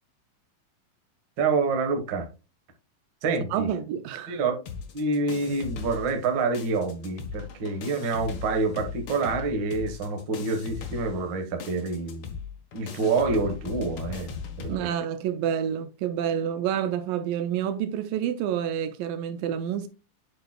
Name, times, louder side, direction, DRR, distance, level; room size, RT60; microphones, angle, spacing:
voice 1, 1.4-2.3 3.2-3.7 4.3-4.6 4.9-12.3 12.7-14.9, right 3 dB, 55° right, 1.2 m, -27 dB
voice 2, 3.5-4.4 14.7-19.9, right 9 dB, 80° right, 2.2 m, -28 dB
sound 1, 4.7-6.3 6.5-14.8, left 6 dB, 60° left, 1.6 m, -39 dB
7.9 x 6.6 x 2.2 m
omnidirectional pair, 4.2 m